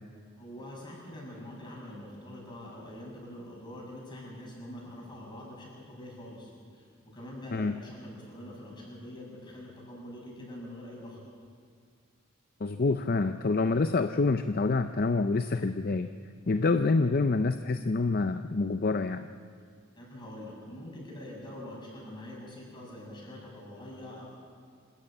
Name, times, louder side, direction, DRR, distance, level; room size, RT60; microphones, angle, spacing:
voice 1, 0.4-11.2 20.0-24.3, left 1 dB, 20° left, -3 dB, 6.8 m, -44 dB
voice 2, 12.6-16.1 16.5-19.3, left 3 dB, 45° left, 9 dB, 0.5 m, -27 dB
26.0 x 13.5 x 8.9 m, 2.1 s
head